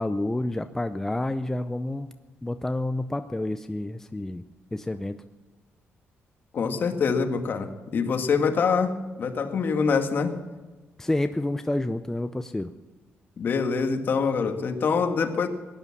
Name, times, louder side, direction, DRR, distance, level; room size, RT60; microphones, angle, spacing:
voice 1, 0.0-2.1 2.4-4.4 4.7-5.2 11.0-12.7, left 1 dB, 10° left, 9 dB, 0.5 m, -29 dB
voice 2, 6.5-10.3 13.4-15.5, left 5 dB, 50° left, 6 dB, 1.6 m, -25 dB
17.5 x 11.0 x 7.2 m, 1.3 s
cardioid pair, 130°, 4 cm